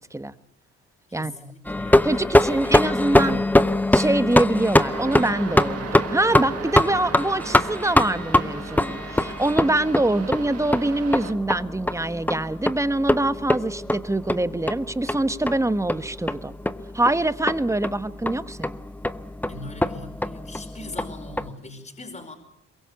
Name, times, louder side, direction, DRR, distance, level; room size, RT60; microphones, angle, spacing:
voice 1, 1.1-3.5 19.5-22.3, left 2 dB, 25° left, 1 dB, 4.8 m, -41 dB
sound 1, 1.7-21.5, left 1 dB, 5° left, 0.9 m, -23 dB
voice 2, 2.0-3.4 3.9-16.6 16.9-18.8, right 2 dB, 10° right, 12 dB, 1.2 m, -24 dB
sound 2, 4.9-11.3, right 7 dB, 55° right, 1.9 m, -37 dB
23.0 x 22.5 x 8.4 m, 0.74 s
cardioid pair, 90°, 30 cm